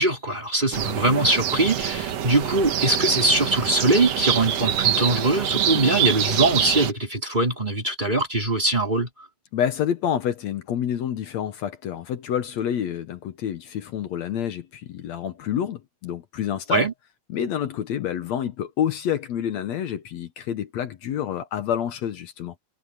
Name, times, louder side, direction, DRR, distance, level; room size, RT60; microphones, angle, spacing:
voice 1, 0.0-9.1 16.7-16.9, right 2 dB, 15° right, 3.5 m, -22 dB
sound 1, 0.7-6.9, right 9 dB, 60° right, 2.1 m, -25 dB
voice 2, 9.5-16.9 17.3-22.5, left 9 dB, 65° left, 2.0 m, -28 dB
omnidirectional pair, 3.9 m